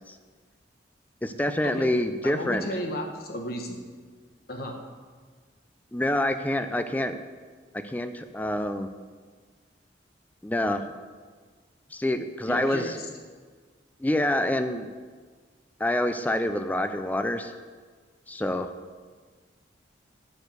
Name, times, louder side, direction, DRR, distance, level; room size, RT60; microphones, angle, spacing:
voice 1, 1.2-2.7 5.9-7.2 7.7-8.9 10.4-10.9 11.9-13.0 14.0-14.9 15.8-17.5 18.3-18.7, left 1 dB, 10° left, 9 dB, 0.4 m, -27 dB
voice 2, 2.2-3.8 4.5-4.8 12.5-13.1, left 1 dB, 55° left, 3 dB, 1.2 m, -33 dB
7.2 x 6.3 x 6.6 m, 1.5 s
head